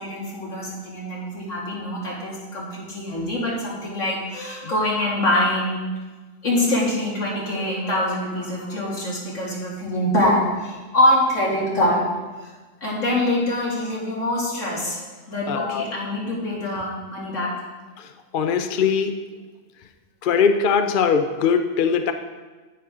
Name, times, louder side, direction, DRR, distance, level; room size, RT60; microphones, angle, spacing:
voice 1, 0.0-5.8 6.4-12.0 12.8-17.6, left 1 dB, 80° left, -5 dB, 2.9 m, -24 dB
voice 2, 15.5-15.8 18.0-19.2 20.2-22.1, left 6 dB, 50° left, 7 dB, 0.7 m, -21 dB
10.5 x 9.3 x 3.7 m, 1.3 s
omnidirectional pair, 1.3 m